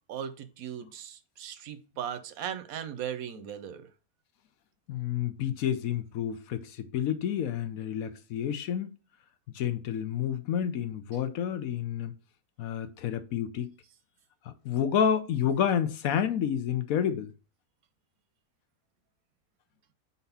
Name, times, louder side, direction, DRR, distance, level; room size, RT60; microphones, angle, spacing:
voice 1, 0.1-3.9, right 9 dB, 85° right, 1.2 m, -38 dB
voice 2, 4.9-8.9 9.5-12.1 12.6-13.7 14.6-17.3, left 9 dB, 80° left, 1.2 m, -29 dB
4.2 x 4.1 x 5.5 m
omnidirectional pair, 1.5 m